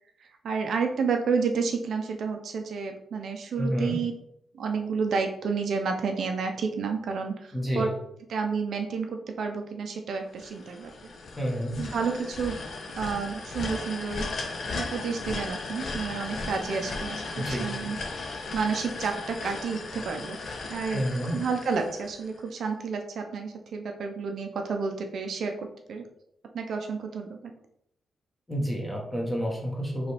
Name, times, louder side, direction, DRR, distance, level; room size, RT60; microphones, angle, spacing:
voice 1, 0.4-4.1 4.5-7.9 8.3-11.1 11.8-12.5 13.0-14.3 14.9-18.0 18.5-20.4 20.7-21.1 21.3-26.0 26.5-27.5, right 5 dB, 60° right, 4 dB, 0.5 m, -30 dB
voice 2, 3.6-4.0 7.5-7.9 11.4-11.8 17.4-17.7 20.9-21.4 28.5-30.1, equal, 10° left, -2 dB, 1.1 m, -29 dB
sound 1, 10.4-22.5, left 3 dB, 50° left, 0.6 m, -36 dB
4.9 x 3.2 x 3.3 m, 0.74 s
wide cardioid pair, 175°, 0 cm